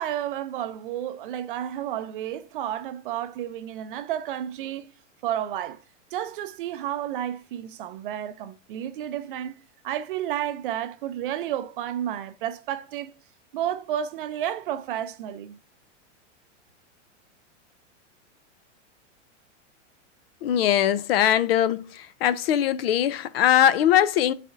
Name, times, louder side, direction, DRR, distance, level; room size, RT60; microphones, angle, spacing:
voice 1, 0.0-4.9 5.2-5.8 6.1-13.1 13.5-15.6, right 11 dB, 45° right, 0.5 m, -31 dB
voice 2, 20.4-24.3, left 10 dB, 55° left, 0.5 m, -21 dB
10.5 x 4.1 x 2.5 m
supercardioid pair, 160°, 37 cm